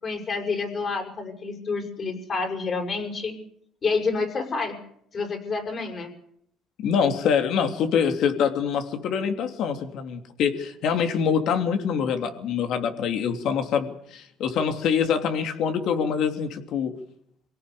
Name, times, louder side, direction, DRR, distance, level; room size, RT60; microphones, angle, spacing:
voice 1, 0.0-3.3 3.8-4.8 5.1-6.1, left 4 dB, 40° left, 3 dB, 6.3 m, -28 dB
voice 2, 6.8-17.0, left 7 dB, 65° left, 6 dB, 3.1 m, -25 dB
25.0 x 17.5 x 7.0 m, 0.70 s
cardioid pair, 110°, 0 cm